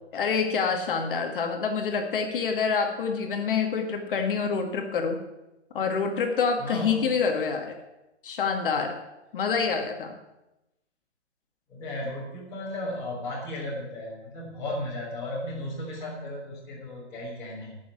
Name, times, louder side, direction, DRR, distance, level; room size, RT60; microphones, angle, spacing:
voice 1, 0.1-5.2 5.7-7.8 8.2-9.0 9.3-10.1, left 5 dB, 50° left, 4 dB, 2.0 m, -27 dB
voice 2, 6.6-7.1 11.7-17.8, left 1 dB, 10° left, -10 dB, 3.5 m, -35 dB
12.5 x 7.1 x 9.9 m, 0.97 s
hypercardioid pair, 160°, 34 cm